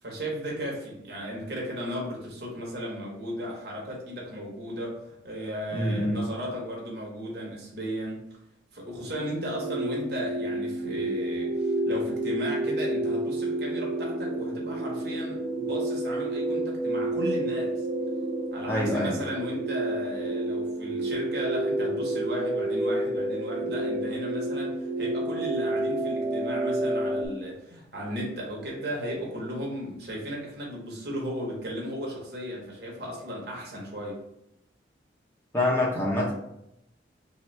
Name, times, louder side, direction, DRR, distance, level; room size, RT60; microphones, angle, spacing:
voice 1, 0.0-8.2 8.7-17.8 18.5-34.2, equal, 60° right, -2 dB, 1.1 m, -35 dB
voice 2, 5.7-6.2 18.7-19.1 35.5-36.3, left 1 dB, 15° left, -5 dB, 0.9 m, -25 dB
sound 1, 9.0-27.3, right 1 dB, 35° right, 0.4 m, -29 dB
3.3 x 2.9 x 3.3 m, 0.81 s
head